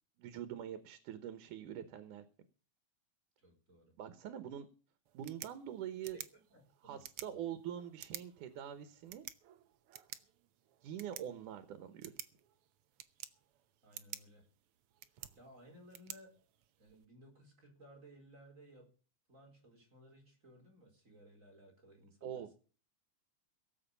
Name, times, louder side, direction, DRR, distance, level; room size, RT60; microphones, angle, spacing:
voice 1, 0.2-2.2 4.0-4.7 5.1-6.2 6.8-9.2 10.8-12.1 22.2-22.5, right 10 dB, 85° right, 12 dB, 2.7 m, -44 dB
voice 2, 3.4-4.0 6.1-7.4 13.8-14.5 15.3-16.4 16.8-18.9 19.3-22.5, right 1 dB, 25° right, 2 dB, 5.0 m, -60 dB
sound 1, 5.0-17.0, right 12 dB, 70° right, 1.4 m, -53 dB
17.5 x 7.8 x 6.9 m, 0.39 s
omnidirectional pair, 3.5 m